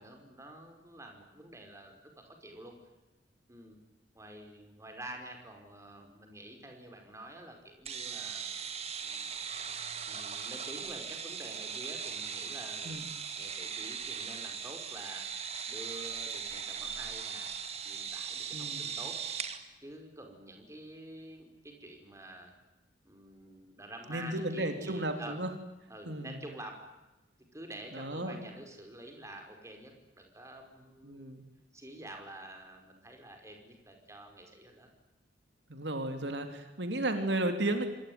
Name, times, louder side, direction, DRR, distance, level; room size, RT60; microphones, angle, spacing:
voice 1, 0.0-2.8 3.5-3.8 4.1-8.5 9.0-9.3 10.1-13.0 13.4-15.3 15.7-17.5 17.8-19.2 19.8-22.5 23.0-25.4 25.9-26.8 27.5-31.3 31.7-34.9, right 1 dB, 15° right, 4 dB, 5.3 m, -48 dB
sound 1, 7.8-19.6, right 7 dB, 35° right, 2.3 m, -39 dB
voice 2, 18.5-18.8 24.1-25.5 26.1-26.3 27.9-28.5 31.0-31.4 35.7-37.9, right 1 dB, 70° right, 6 dB, 3.3 m, -34 dB
26.5 x 21.5 x 9.6 m, 1.0 s
head